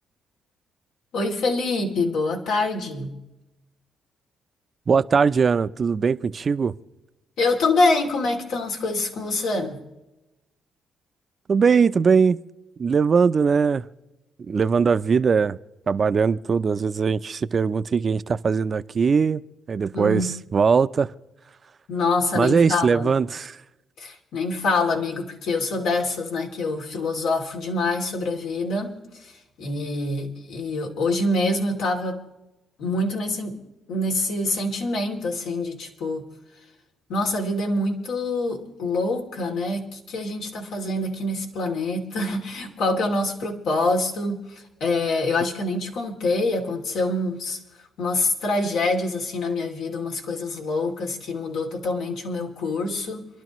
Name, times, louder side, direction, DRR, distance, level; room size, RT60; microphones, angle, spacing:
voice 1, 1.1-3.2 7.4-9.8 19.9-20.3 21.9-23.1 24.0-32.2 32.8-33.6 33.9-36.3 37.1-47.6 48.0-53.3, left 2 dB, 85° left, 2.8 m, -25 dB
voice 2, 4.9-6.7 11.5-12.4 12.8-13.9 14.5-15.6 15.9-19.4 19.7-21.1 22.4-23.6, right 5 dB, 40° right, 0.5 m, -20 dB
27.5 x 12.0 x 3.1 m
cardioid pair, 90°, 0 cm